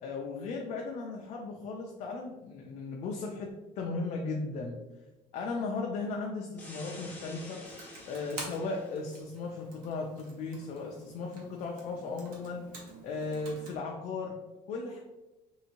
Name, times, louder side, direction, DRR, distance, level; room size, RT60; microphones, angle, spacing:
voice 1, 0.0-3.5 3.7-4.8 5.3-7.6 8.1-12.6 13.0-14.3 14.7-15.0, left 3 dB, 50° left, 0 dB, 0.4 m, -36 dB
sound 1, 6.6-9.1, left 1 dB, 10° left, 0.7 m, -48 dB
Computer keyboard, 7.6-13.8, right 2 dB, 70° right, 1.0 m, -48 dB
3.3 x 2.7 x 2.8 m, 1.1 s
cardioid pair, 135°, 15 cm